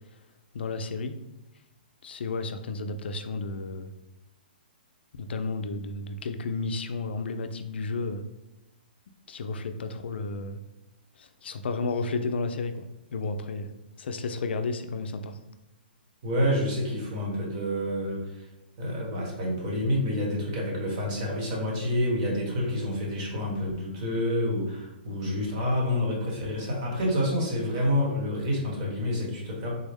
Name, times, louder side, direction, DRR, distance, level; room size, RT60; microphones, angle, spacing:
voice 1, 0.5-1.2 2.0-3.9 5.1-8.3 9.3-10.6 11.2-12.9 13.1-15.4, left 3 dB, 85° left, 8 dB, 0.4 m, -32 dB
voice 2, 16.2-18.4 18.8-29.7, left 1 dB, 40° right, -2 dB, 1.1 m, -28 dB
3.8 x 2.0 x 3.4 m, 1.0 s
hypercardioid pair, 165°, 6 cm